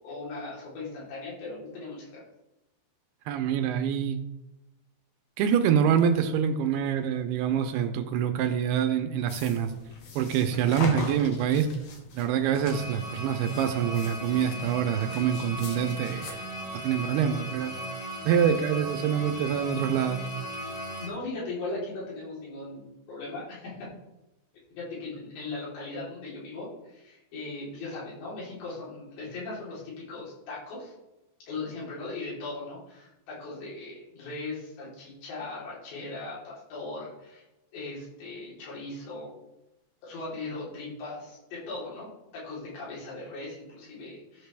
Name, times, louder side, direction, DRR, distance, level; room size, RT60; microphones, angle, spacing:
voice 1, 0.0-2.2 18.0-18.1 20.6-23.9 24.8-30.9 31.5-37.4 37.7-39.3 40.0-44.5, left 3 dB, 90° left, -7 dB, 5.8 m, -39 dB
voice 2, 3.3-4.2 5.4-9.7 10.2-11.7 12.1-16.4 16.7-17.7 18.2-20.2, right 8 dB, 80° right, 7 dB, 2.6 m, -26 dB
sound 1, 9.3-16.3, left 3 dB, 65° left, 2.3 m, -41 dB
sound 2, 12.6-21.1, equal, 50° left, 1.9 m, -37 dB
14.0 x 5.9 x 3.4 m, 0.95 s
omnidirectional pair, 4.9 m